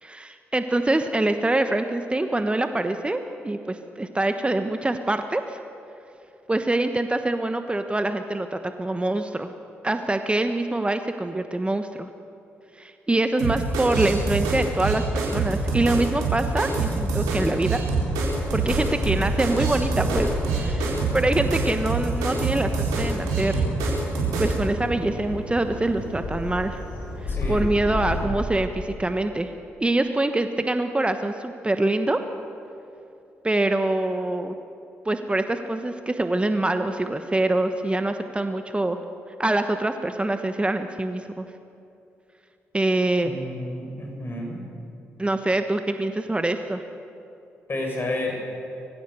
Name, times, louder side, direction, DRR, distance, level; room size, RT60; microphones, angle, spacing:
voice 1, 0.0-5.6 6.5-9.5 9.8-12.1 12.8-17.8 18.5-23.6 24.4-26.8 27.2-29.5 29.8-32.2 33.4-34.6 35.0-39.0 39.4-41.4 42.7-43.3 45.2-46.8, right 2 dB, 20° right, 7 dB, 1.2 m, -25 dB
sound 1, 13.4-24.5, right 4 dB, 80° right, 4.4 m, -25 dB
Bird vocalization bird call bird song, 17.9-28.2, left 2 dB, 75° left, 5.3 m, -33 dB
voice 2, 27.3-27.6 43.2-44.6 47.7-48.4, left 1 dB, 40° left, 0 dB, 6.9 m, -30 dB
24.5 x 15.5 x 7.0 m, 2.7 s
hypercardioid pair, 45°, 6 cm